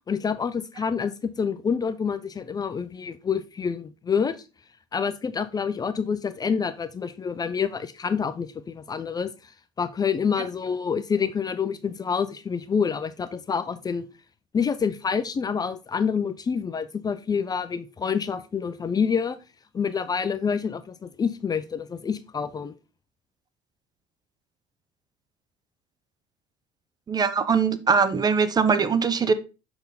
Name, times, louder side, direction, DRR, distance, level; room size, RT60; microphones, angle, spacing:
voice 1, 0.1-4.4 4.9-9.3 9.8-14.0 14.5-19.4 19.7-22.7, left 6 dB, 30° left, 0.6 m, -27 dB
voice 2, 27.1-29.3, right 5 dB, 30° right, 0.8 m, -21 dB
6.8 x 4.4 x 4.0 m
supercardioid pair, 85°, 14 cm